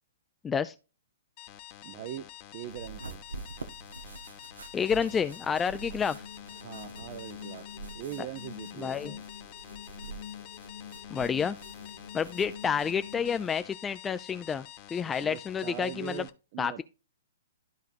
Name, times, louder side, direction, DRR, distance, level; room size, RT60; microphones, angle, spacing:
voice 1, 0.4-0.7 4.7-6.2 8.2-8.3 8.8-9.1 11.1-11.6 12.1-14.6 14.9-16.3 16.6-16.8, left 6 dB, 15° left, 0.4 m, -29 dB
sound 1, 1.4-16.3, left 13 dB, 35° left, 0.8 m, -48 dB
voice 2, 1.8-3.2 6.6-7.7 7.9-9.2 15.2-16.8, right 13 dB, 40° right, 0.5 m, -41 dB
sound 2, 2.7-13.5, right 3 dB, 75° right, 1.0 m, -47 dB
sound 3, 5.5-13.4, left 9 dB, 65° left, 0.8 m, -46 dB
13.0 x 4.6 x 2.5 m
figure-of-eight pair, 120°, 0 cm